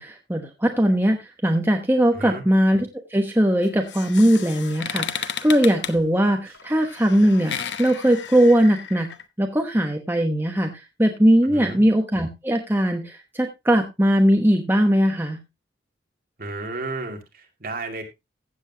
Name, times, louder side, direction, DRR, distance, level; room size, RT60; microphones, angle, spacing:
voice 1, 0.0-9.1 9.4-10.7 11.0-15.4, equal, 10° right, 3 dB, 1.0 m, -20 dB
voice 2, 2.1-2.4 11.5-11.8 16.4-18.0, right 2 dB, 50° right, 3 dB, 2.4 m, -33 dB
sound 1, 3.6-9.2, left 8 dB, 75° left, 0.9 m, -34 dB
15.0 x 7.9 x 2.8 m, 0.23 s
head